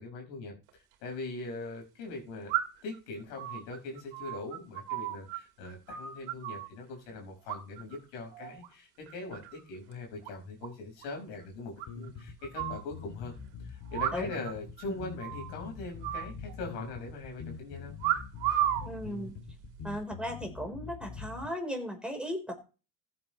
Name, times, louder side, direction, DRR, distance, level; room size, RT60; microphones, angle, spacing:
voice 1, 0.0-2.5 2.8-13.3 13.6-18.0, left 3 dB, 80° left, 1 dB, 5.4 m, -41 dB
sound 1, 0.7-0.8 2.5-2.9 3.4-5.4 5.6-6.7 7.5-8.0 8.3-8.7 9.1-9.6 9.9-10.0 10.2-10.3 10.6-10.7 11.0-11.1 11.8-12.8 13.9-14.5 14.8-14.9 15.2-15.5 16.0-16.9 18.0-18.9 19.6-20.0, right 12 dB, 70° right, 2.6 m, -34 dB
sound 2, 11.9-21.5, left 5 dB, 45° left, 2.9 m, -44 dB
voice 2, 18.8-19.3 19.8-22.5, equal, ahead, 3 dB, 4.2 m, -36 dB
15.0 x 8.6 x 3.2 m, 0.32 s
hypercardioid pair, 80°, 49 cm